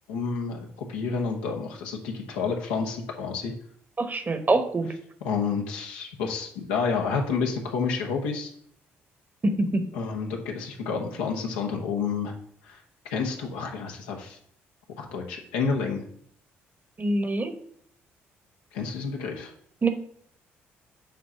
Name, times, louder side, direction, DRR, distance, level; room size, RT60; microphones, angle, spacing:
voice 1, 0.1-3.5 5.2-8.5 9.9-12.3 12.6-12.8 13.1-14.4 15.0-16.0 18.7-19.5, left 5 dB, 90° left, 2 dB, 1.0 m, -29 dB
voice 2, 4.0-4.9 9.4-9.8 17.0-17.6 19.8-19.9, right 2 dB, 30° right, 9 dB, 1.0 m, -24 dB
7.3 x 2.9 x 5.6 m, 0.64 s
hypercardioid pair, 55°, 6 cm